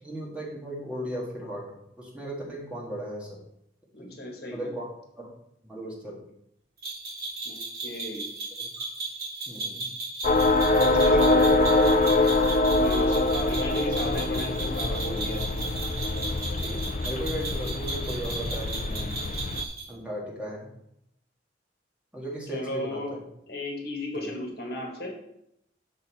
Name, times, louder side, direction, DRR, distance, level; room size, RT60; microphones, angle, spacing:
voice 1, 0.0-1.7 2.0-3.4 4.0-4.1 4.5-4.9 5.2-5.3 5.6-6.2 8.6-8.8 9.5-9.9 10.7-11.8 13.0-13.3 16.4-19.3 19.9-20.7 22.1-23.2 24.1-24.3, equal, 5° right, -5 dB, 1.7 m, -36 dB
voice 2, 3.9-4.7 7.4-8.3 11.0-11.5 12.8-15.4 22.5-23.1 23.5-25.1, left 1 dB, 60° left, 1 dB, 1.5 m, -35 dB
sound 1, 6.8-19.9, right 3 dB, 60° right, 2.7 m, -35 dB
sound 2, 10.2-19.7, left 2 dB, 45° left, 0.4 m, -24 dB
6.5 x 5.6 x 4.2 m, 0.78 s
head